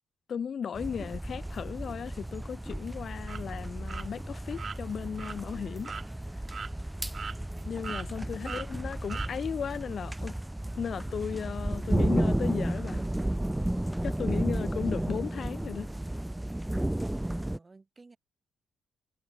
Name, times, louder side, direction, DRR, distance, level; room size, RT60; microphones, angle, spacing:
voice 1, 0.3-5.9 7.6-10.3 10.8-13.0 14.0-15.9, left 7 dB, 50° left, 1.5 m, -35 dB
sound 1, 0.8-17.6, right 1 dB, 5° right, 1.9 m, -33 dB
sound 2, 3.2-3.4 3.9-4.1 4.6-4.8 5.2-5.4 5.8-6.1 6.5-6.7 7.1-7.6 7.8-8.1 8.4-8.7 9.1-9.3, right 6 dB, 45° right, 0.6 m, -39 dB
voice 2, 7.2-7.8 8.4-8.6 14.5-15.2 17.2-18.2, right 3 dB, 25° right, 5.1 m, -54 dB
cardioid pair, 90°, 0 cm